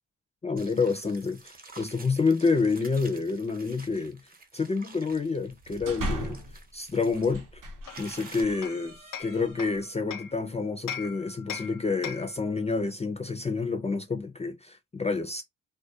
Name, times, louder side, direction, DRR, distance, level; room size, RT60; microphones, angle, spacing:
voice 1, 0.4-4.2 4.5-6.4 6.7-7.6 8.0-15.4, left 4 dB, 20° left, 0.3 m, -28 dB
sound 1, 0.6-7.3 7.9-8.4, right 3 dB, 30° right, 0.6 m, -50 dB
sound 2, 5.5-6.6 7.1-9.9, right 1 dB, 75° right, 0.7 m, -38 dB
Hammer, 7.9-10.4 10.9-12.4, left 8 dB, 80° left, 0.5 m, -40 dB
2.3 x 2.1 x 2.6 m
cardioid pair, 80°, 32 cm